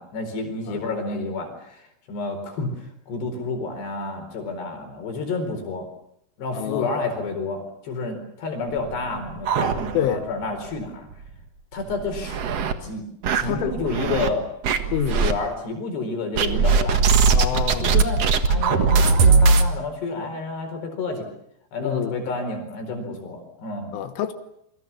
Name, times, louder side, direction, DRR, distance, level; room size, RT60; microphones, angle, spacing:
voice 1, 0.0-5.9 6.4-11.1 11.7-12.4 12.8-13.0 13.3-14.5 15.1-17.0 17.8-18.2 18.5-21.3 21.7-23.9, left 3 dB, 60° left, 6.4 m, -30 dB
voice 2, 6.5-6.9 10.0-10.2 13.4-13.8 14.9-15.2 17.3-17.9 21.8-22.2 23.9-24.3, left 10 dB, 80° left, 3.8 m, -27 dB
sound 1, 8.8-10.3 10.7-10.8 11.1-11.2 11.8-12.7 13.2-14.3 14.6-15.3 16.4-19.7, right 5 dB, 85° right, 1.4 m, -20 dB
27.5 x 23.5 x 7.2 m
omnidirectional pair, 5.5 m